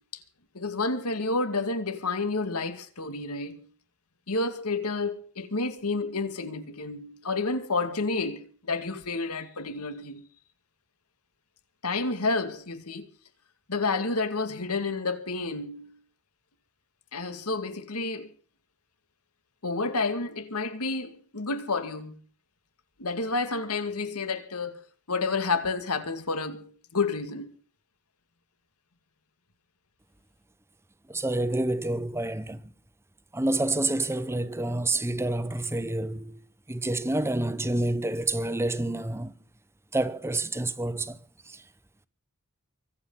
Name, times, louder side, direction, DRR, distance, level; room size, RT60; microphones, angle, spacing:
voice 1, 0.5-3.7 4.3-10.2 11.8-13.1 13.7-16.0 17.1-18.3 19.6-22.2 23.0-24.8 25.1-27.5, left 3 dB, 90° left, 2.2 m, -30 dB
voice 2, 31.1-32.6 33.3-36.4 36.7-39.3 39.9-41.2 41.5-41.6, right 2 dB, 10° right, 0.8 m, -28 dB
24.5 x 8.4 x 5.7 m
head